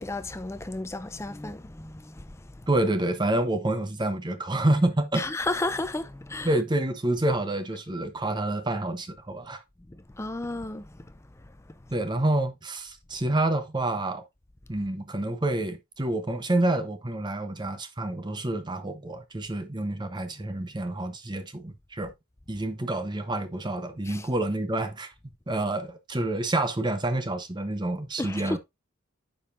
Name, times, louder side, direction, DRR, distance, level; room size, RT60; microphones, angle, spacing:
voice 1, 0.0-2.2 5.1-6.5 10.2-10.9 24.1-24.2 28.2-28.6, left 2 dB, 15° left, 0.5 m, -32 dB
voice 2, 2.7-5.2 6.4-9.6 11.9-14.2 14.7-22.1 22.5-25.1 25.5-28.6, right 1 dB, 20° right, 0.8 m, -28 dB
9.0 x 5.4 x 2.5 m
head